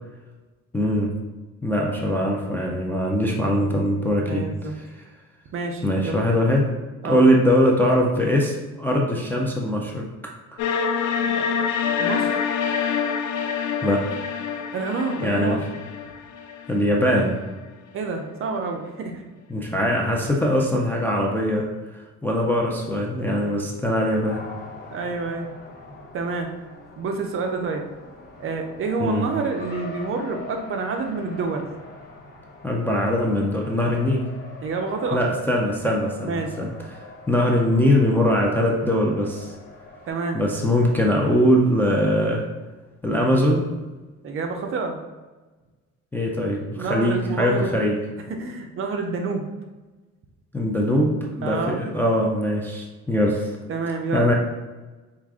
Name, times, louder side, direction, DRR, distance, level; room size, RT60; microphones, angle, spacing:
voice 1, 0.7-1.1 1.6-4.5 4.9-5.0 5.8-6.7 7.0-10.1 10.5-10.6 13.8-14.1 15.2-15.6 16.7-17.3 19.5-21.7 22.2-24.4 29.0-29.3 32.6-34.2 35.1-36.7 37.3-39.5 40.3-42.4 43.0-43.6 46.1-48.0 50.5-53.5 54.1-54.3, equal, 5° left, -2 dB, 0.3 m, -21 dB
voice 2, 4.3-4.8 5.5-6.3 7.0-7.3 11.4-11.7 12.0-12.5 14.7-15.6 17.9-19.2 24.9-25.5 26.1-26.5 27.0-27.8 28.4-31.7 34.6-35.2 35.8-35.9 36.2-36.5 40.1-40.4 44.2-45.0 46.7-47.8 48.3-49.5 51.4-51.8 53.7-54.3, right 4 dB, 45° right, 4 dB, 0.5 m, -28 dB
sound 1, 10.6-17.5, left 7 dB, 80° left, 0.4 m, -26 dB
Race car auto racing, 24.2-40.1, left 2 dB, 35° left, 0.9 m, -43 dB
4.7 x 2.4 x 3.5 m, 1.2 s
cardioid pair, 160°, 29 cm